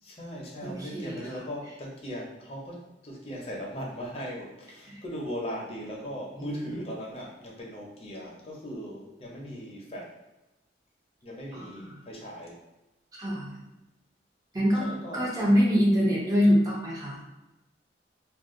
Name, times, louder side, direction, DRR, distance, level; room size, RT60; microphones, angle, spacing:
voice 1, 0.0-10.1 11.2-12.6 14.8-15.3, equal, 30° left, -2 dB, 0.6 m, -38 dB
voice 2, 0.6-1.2 4.9-5.0 6.4-6.5 11.5-11.7 13.2-13.5 14.5-14.9 15.1-17.2, equal, 20° right, -5 dB, 0.8 m, -24 dB
2.4 x 2.3 x 3.6 m, 1.0 s
head